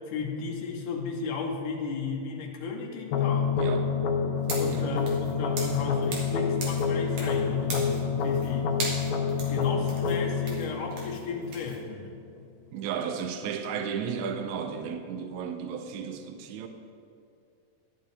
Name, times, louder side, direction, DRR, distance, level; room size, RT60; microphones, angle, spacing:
voice 1, 0.1-3.5 4.5-8.7 9.5-12.1, left 5 dB, 65° left, 0 dB, 2.6 m, -34 dB
sound 1, 3.1-12.1, left 6 dB, 85° left, 2.4 m, -28 dB
voice 2, 3.5-3.9 4.6-4.9 12.7-16.7, right 7 dB, 90° right, 7 dB, 1.6 m, -34 dB
sound 2, 4.4-6.4 6.6-7.4 7.7-8.5 8.8-11.8, right 3 dB, 55° right, 2.7 m, -38 dB
13.5 x 11.0 x 3.4 m, 2.6 s
omnidirectional pair, 4.1 m